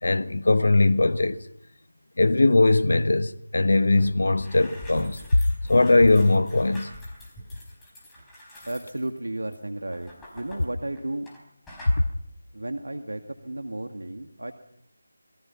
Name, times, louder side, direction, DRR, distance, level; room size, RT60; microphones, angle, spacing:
voice 1, 0.0-1.4 2.2-5.2 5.7-6.9, left 2 dB, 60° left, 1.1 m, -20 dB
Wood, 3.7-5.5 8.1-8.9 9.3-9.4, right 3 dB, 25° right, 3.1 m, -48 dB
sound 1, 4.3-11.4 11.7-12.0, left 1 dB, 5° left, 4.6 m, -45 dB
voice 2, 8.7-11.3 12.5-14.5, right 1 dB, 75° right, 1.9 m, -33 dB
27.0 x 22.0 x 5.7 m
figure-of-eight pair, 160°, 0 cm